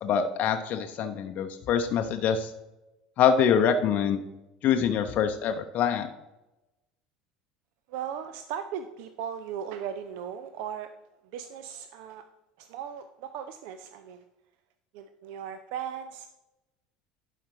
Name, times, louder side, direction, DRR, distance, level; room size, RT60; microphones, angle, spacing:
voice 1, 0.0-2.5 3.2-4.2 4.6-6.1, left 7 dB, 45° left, 6 dB, 0.6 m, -25 dB
voice 2, 7.9-10.9 11.3-12.2 12.6-14.2 14.9-16.3, right 8 dB, 60° right, 10 dB, 0.4 m, -37 dB
11.5 x 5.0 x 3.0 m, 0.97 s
figure-of-eight pair, 70°, 4 cm